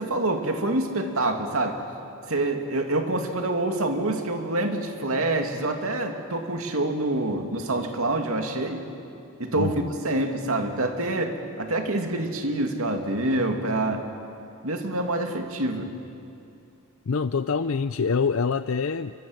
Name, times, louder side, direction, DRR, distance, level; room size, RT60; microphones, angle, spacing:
voice 1, 0.0-1.8 2.3-8.8 9.4-14.0 14.6-15.9, right 2 dB, 75° right, 4 dB, 2.5 m, -26 dB
voice 2, 9.6-9.9 17.1-19.1, left 5 dB, 70° left, 12 dB, 0.5 m, -25 dB
26.0 x 23.5 x 7.9 m, 2.6 s
head